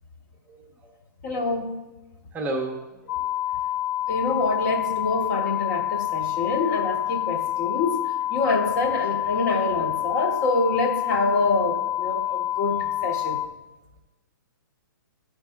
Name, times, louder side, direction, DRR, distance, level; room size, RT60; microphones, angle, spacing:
voice 1, 1.2-1.7 4.1-8.0 8.3-13.4, left 3 dB, 45° left, 2 dB, 1.3 m, -26 dB
voice 2, 2.3-3.2 7.4-7.5, right 2 dB, 15° right, 1 dB, 0.7 m, -31 dB
sound 1, 3.1-13.5, left 12 dB, 65° left, 0.4 m, -27 dB
11.0 x 4.5 x 3.5 m, 1.1 s
hypercardioid pair, 130°, 11 cm